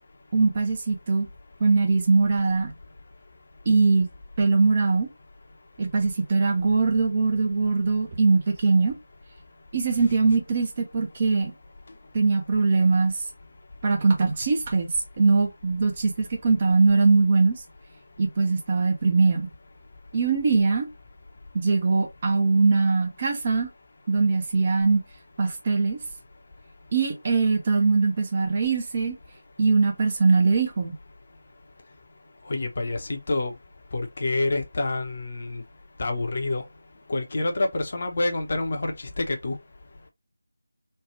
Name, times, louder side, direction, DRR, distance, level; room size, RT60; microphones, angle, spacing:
voice 1, 0.3-1.3 1.6-2.7 3.7-4.1 4.4-5.1 5.8-8.9 9.7-11.5 12.1-13.2 13.8-14.9 15.2-17.6 18.2-19.5 20.1-20.9 21.5-23.7 24.1-25.0 25.4-26.0 26.9-29.2 29.6-30.9, right 4 dB, 30° right, 0.7 m, -21 dB
voice 2, 32.5-33.5 33.9-35.6 36.0-36.6 37.1-39.6, left 2 dB, 40° left, 0.8 m, -27 dB
3.3 x 2.3 x 3.0 m
figure-of-eight pair, 160°, 0 cm